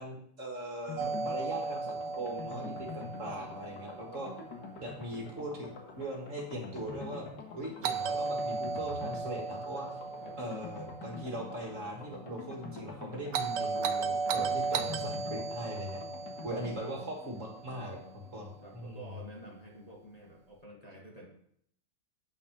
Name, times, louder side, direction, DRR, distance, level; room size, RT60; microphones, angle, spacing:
voice 1, 0.0-4.3 4.8-7.3 7.5-10.0 10.4-16.0 16.4-19.1, right 1 dB, 45° right, 0 dB, 1.9 m, -40 dB
sound 1, 0.9-19.5 19.8-19.9 20.1-20.2, left 4 dB, 75° left, 1.9 m, -46 dB
Doorbell, 1.0-5.0 7.8-12.1 13.3-17.7, right 4 dB, 85° right, 1.3 m, -36 dB
voice 2, 18.6-21.3, right 1 dB, 25° left, -3 dB, 1.5 m, -50 dB
8.6 x 5.9 x 5.0 m, 0.68 s
omnidirectional pair, 1.9 m